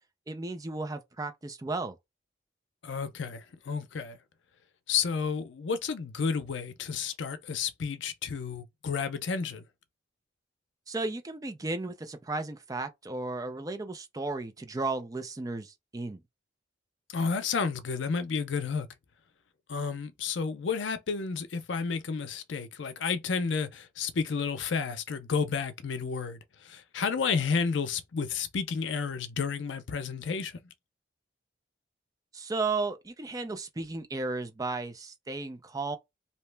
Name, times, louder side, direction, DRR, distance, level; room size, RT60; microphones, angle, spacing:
voice 1, 0.3-2.0 10.9-16.2 32.3-36.0, right 3 dB, 20° right, 0.4 m, -34 dB
voice 2, 2.8-4.2 4.9-9.6 17.1-18.9 19.7-30.6, left 5 dB, 80° left, 0.5 m, -31 dB
2.8 x 2.1 x 3.2 m
head